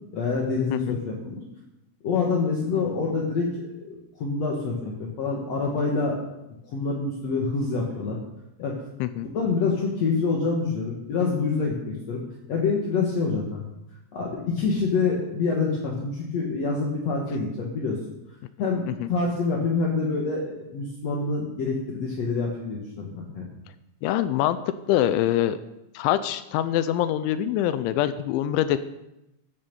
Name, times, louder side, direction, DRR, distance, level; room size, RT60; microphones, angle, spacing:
voice 1, 0.1-1.4 2.0-3.5 3.8-6.2 6.6-8.2 8.6-8.7 9.3-12.2 12.5-13.6 14.1-18.0 18.6-23.5, left 4 dB, 65° left, -2 dB, 1.6 m, -26 dB
voice 2, 24.0-24.6 24.9-25.6 25.9-28.8, left 12 dB, 85° left, 12 dB, 2.9 m, -24 dB
14.5 x 7.2 x 6.9 m, 0.90 s
omnidirectional pair, 5.4 m